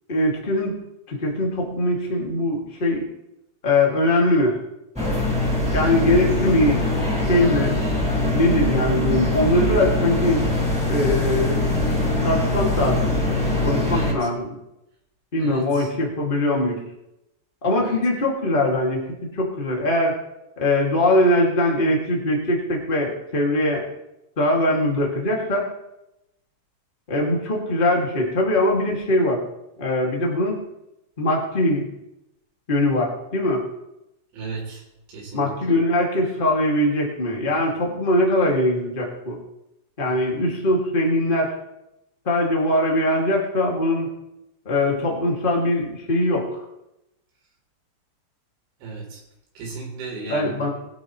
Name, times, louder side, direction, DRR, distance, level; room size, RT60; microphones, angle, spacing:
voice 1, 0.1-0.8 1.1-3.0 3.6-4.6 5.7-6.8 7.3-7.8 8.3-10.4 10.9-11.6 12.2-13.1 13.6-14.5 15.3-16.8 17.6-19.0 19.3-20.2 20.6-23.8 24.4-25.7 27.1-29.4 29.8-30.6 31.2-31.9 32.7-33.7 35.3-39.4 40.0-41.5 42.2-44.1 44.6-46.6 50.3-50.7, left 1 dB, 85° left, -2 dB, 0.4 m, -21 dB
sound 1, 5.0-14.1, left 1 dB, ahead, 3.5 m, -22 dB
voice 2, 13.9-14.3 15.4-15.9 17.8-18.0 34.3-34.8 35.1-35.5 40.1-40.3 48.8-49.2 49.6-50.7, right 3 dB, 75° right, -1 dB, 5.9 m, -35 dB
21.5 x 11.5 x 3.1 m, 0.89 s
omnidirectional pair, 5.3 m